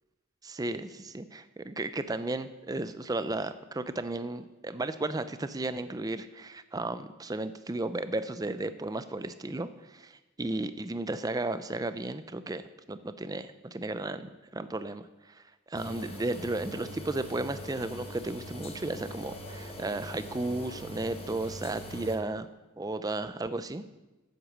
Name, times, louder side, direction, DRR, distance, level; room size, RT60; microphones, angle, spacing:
voice 1, 0.4-12.6 12.9-15.1 15.3-22.5 22.8-23.8, right 2 dB, 20° right, 12 dB, 0.5 m, -34 dB
sound 1, 15.7-22.2, equal, 30° left, 1.3 m, -42 dB
9.8 x 8.1 x 7.4 m, 1.1 s
head